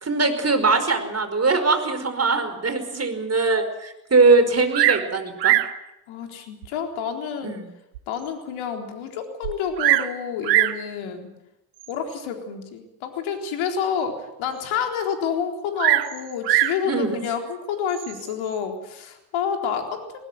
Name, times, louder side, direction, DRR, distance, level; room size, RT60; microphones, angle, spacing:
voice 1, 0.0-5.5 7.4-7.7 16.9-17.2, right 3 dB, 30° right, 9 dB, 5.1 m, -21 dB
Bird vocalization bird call bird song, 4.7-5.1 5.4-5.8 6.6-6.7 7.3-7.4 7.9-8.0 8.2-8.3 9.4-10.1 10.4-10.8 11.8-12.1 15.8-16.8 17.9-18.3, right 15 dB, 90° right, 1.1 m, -21 dB
voice 2, 6.1-7.6 8.1-11.3 11.9-20.2, left 7 dB, 70° left, 4 dB, 4.1 m, -29 dB
20.0 x 19.5 x 9.5 m, 0.87 s
hypercardioid pair, 55°, 49 cm